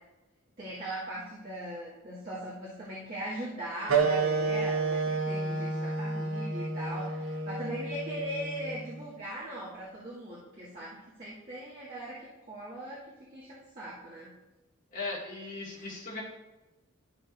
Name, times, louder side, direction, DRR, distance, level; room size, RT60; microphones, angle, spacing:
voice 1, 0.6-14.3 15.7-15.9, right 1 dB, 45° right, -11 dB, 2.1 m, -40 dB
sound 1, 3.9-9.0, right 4 dB, 70° right, 0.9 m, -30 dB
voice 2, 14.9-16.2, left 3 dB, 35° left, -6 dB, 2.2 m, -38 dB
12.0 x 6.4 x 2.6 m, 1.0 s
head